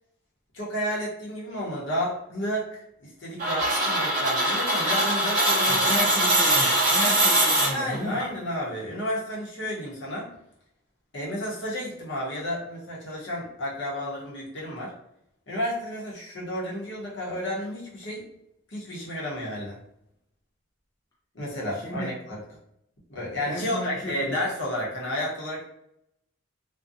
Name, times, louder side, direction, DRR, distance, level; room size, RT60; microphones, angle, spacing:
voice 1, 0.5-6.1 7.6-10.3 11.1-14.9 15.5-18.3 18.7-19.8 21.3-22.4 23.1-25.7, equal, 55° left, -4 dB, 0.8 m, -31 dB
sound 1, 3.4-8.2, right 1 dB, 35° right, 0.9 m, -22 dB
voice 2, 5.7-8.2 21.8-22.1 23.5-24.4, equal, 15° left, -5 dB, 0.3 m, -33 dB
2.6 x 2.2 x 2.5 m, 0.77 s
head